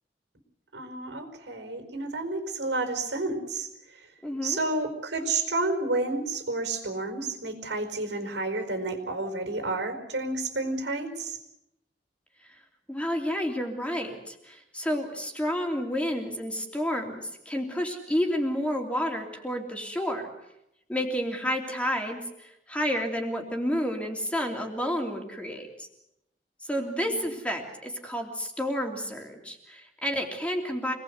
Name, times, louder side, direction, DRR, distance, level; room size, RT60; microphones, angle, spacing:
voice 1, 0.7-4.1 4.4-11.4 26.8-27.3, right 2 dB, 85° right, 6 dB, 4.8 m, -31 dB
voice 2, 4.2-4.6 12.9-20.3 20.9-25.9 26.7-30.9, equal, 5° left, 1 dB, 3.1 m, -30 dB
26.0 x 19.5 x 8.1 m, 0.84 s
head